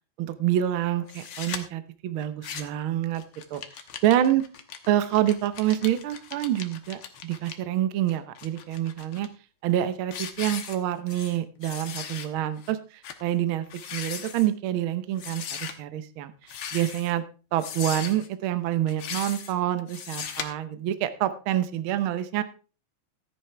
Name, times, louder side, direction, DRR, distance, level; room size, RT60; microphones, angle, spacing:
voice 1, 0.2-3.2 3.5-3.6 4.0-4.4 4.9-9.3 9.6-13.6 13.9-16.3 16.7-17.2 17.5-22.4, right 12 dB, 80° right, 12 dB, 1.1 m, -27 dB
sound 1, 1.1-1.6 2.2-2.8 3.1-7.5 8.1-9.3 9.7-9.9 10.1-11.4 11.6-12.3 12.6-12.7 13.0-13.2 13.6-14.5 15.2-15.7 16.4-17.1 17.6-18.3 18.9-19.5 19.9-20.5, left 8 dB, 60° left, 1.6 m, -38 dB
13.5 x 10.0 x 3.3 m, 0.35 s
omnidirectional pair, 3.4 m